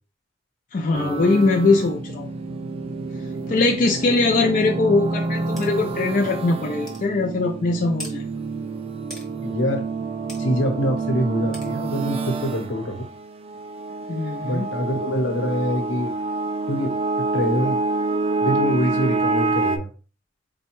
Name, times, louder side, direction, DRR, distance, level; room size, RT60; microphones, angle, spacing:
voice 1, 0.7-2.3 3.5-8.3 14.1-14.7, left 3 dB, 45° left, 0 dB, 0.4 m, -21 dB
sound 1, 0.9-19.8, right 3 dB, 30° right, 0.3 m, -27 dB
sound 2, 5.6-5.7 6.2-6.3 6.9-7.0 8.0-8.2 9.1-9.3 10.3-10.4 11.5-11.7, left 1 dB, ahead, 0.9 m, -38 dB
voice 2, 9.4-9.9 10.4-13.1 14.4-16.2 16.7-17.8 18.4-19.9, equal, 85° left, 3 dB, 1.0 m, -25 dB
4.1 x 2.2 x 3.0 m, 0.35 s
head